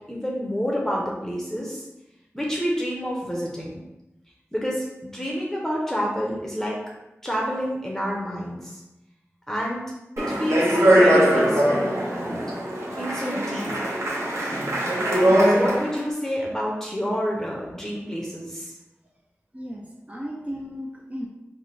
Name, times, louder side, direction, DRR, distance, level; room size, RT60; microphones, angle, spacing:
voice 1, 0.1-1.8 2.3-3.7 4.5-6.8 7.2-8.8 9.5-9.9 10.2-12.4 12.9-13.8 15.5-18.7, equal, 10° left, -3 dB, 0.7 m, -28 dB
Speech, 10.2-16.0, right 1 dB, 70° right, 0.9 m, -21 dB
voice 2, 15.3-15.7 19.5-21.3, equal, 25° right, -1 dB, 0.6 m, -35 dB
3.3 x 2.2 x 4.2 m, 0.95 s
cardioid pair, 40°, 5 cm